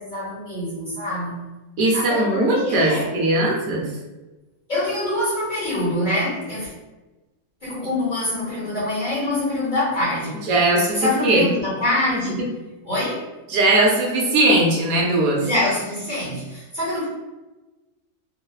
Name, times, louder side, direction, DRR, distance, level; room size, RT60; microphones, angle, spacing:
voice 1, 0.0-1.5 1.9-3.1 4.7-6.7 7.6-10.4 10.9-12.4 12.8-13.2 15.4-17.1, left 1 dB, 40° left, -9 dB, 0.7 m, -25 dB
voice 2, 1.8-3.9 10.5-11.5 13.5-15.4, right 2 dB, 70° right, -2 dB, 1.0 m, -19 dB
3.0 x 2.0 x 2.3 m, 1.1 s
omnidirectional pair, 1.6 m